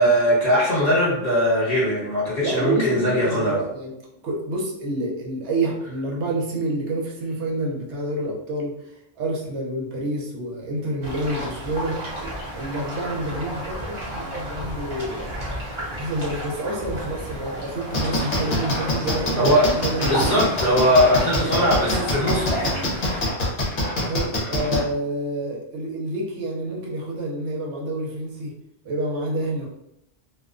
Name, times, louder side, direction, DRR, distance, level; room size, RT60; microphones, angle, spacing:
voice 1, 0.0-3.6 12.4-12.5 19.3-19.7 20.0-22.9, equal, 35° left, -8 dB, 1.1 m, -20 dB
voice 2, 2.4-3.9 4.2-12.0 12.5-15.5 16.0-20.4 23.9-28.5 28.8-29.7, right 1 dB, 70° right, -2 dB, 0.9 m, -28 dB
sound 1, 11.0-23.3, equal, 35° right, 0.6 m, -32 dB
sound 2, 17.9-24.8, left 1 dB, 50° left, 0.8 m, -24 dB
2.3 x 2.2 x 2.4 m, 0.81 s
omnidirectional pair, 1.2 m